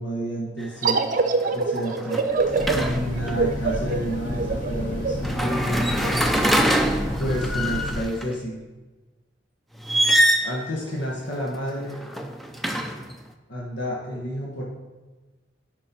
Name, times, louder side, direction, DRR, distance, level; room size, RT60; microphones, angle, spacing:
voice 1, 0.0-2.2 2.7-5.8 7.2-8.6 10.4-12.1 13.5-14.6, equal, 75° left, -4 dB, 1.4 m, -30 dB
sound 1, 0.6-0.9 1.2-3.3 5.2-8.3 9.8-10.6 11.8-13.2, equal, ahead, 0.4 m, -24 dB
sound 2, 0.8-6.1, right 4 dB, 45° right, 0.6 m, -25 dB
Train, 2.3-8.0, left 1 dB, 45° left, 2.3 m, -31 dB
9.1 x 5.3 x 4.4 m, 1.2 s
head